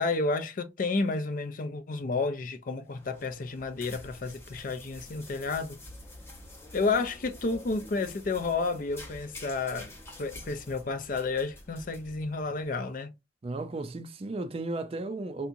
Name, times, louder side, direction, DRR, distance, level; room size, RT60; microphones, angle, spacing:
voice 1, 0.0-5.8 6.7-9.9 10.2-13.1, left 3 dB, 45° left, 0.4 m, -31 dB
sound 1, 2.9-12.9, left 1 dB, 15° left, 0.7 m, -48 dB
voice 2, 13.4-15.5, right 2 dB, 30° right, 0.4 m, -34 dB
3.4 x 2.8 x 2.5 m
head